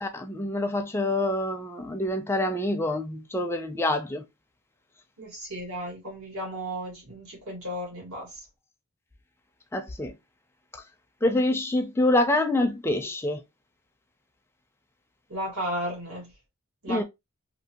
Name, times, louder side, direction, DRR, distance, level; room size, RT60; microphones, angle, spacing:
voice 1, 0.0-4.3 9.7-10.1 10.7-10.8 11.2-13.4 16.9-17.0, left 1 dB, 10° left, 0.4 m, -26 dB
voice 2, 5.2-8.4 15.3-16.3 16.8-17.0, right 1 dB, 75° right, 1.5 m, -34 dB
2.7 x 2.6 x 2.8 m
head